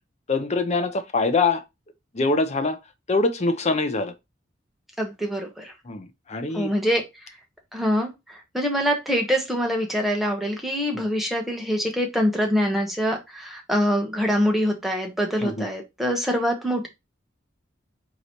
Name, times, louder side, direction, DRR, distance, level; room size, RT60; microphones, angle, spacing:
voice 1, 0.3-1.6 2.1-2.8 3.1-4.1 5.9-6.7 15.4-15.7, left 3 dB, 35° left, 0.6 m, -24 dB
voice 2, 5.0-5.7 6.5-7.0 7.7-16.9, equal, ahead, 1.0 m, -24 dB
3.9 x 2.9 x 4.4 m
head